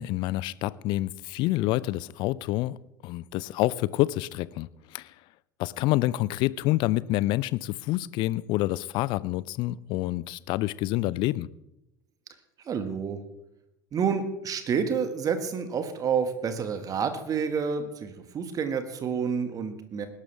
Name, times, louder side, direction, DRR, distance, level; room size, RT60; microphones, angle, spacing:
voice 1, 0.0-2.8 3.0-5.1 5.6-11.5, left 17 dB, 50° left, 20 dB, 0.5 m, -27 dB
voice 2, 12.6-13.2 13.9-20.1, right 6 dB, 35° right, 9 dB, 1.6 m, -29 dB
20.0 x 11.5 x 3.4 m, 0.84 s
figure-of-eight pair, 70°, 11 cm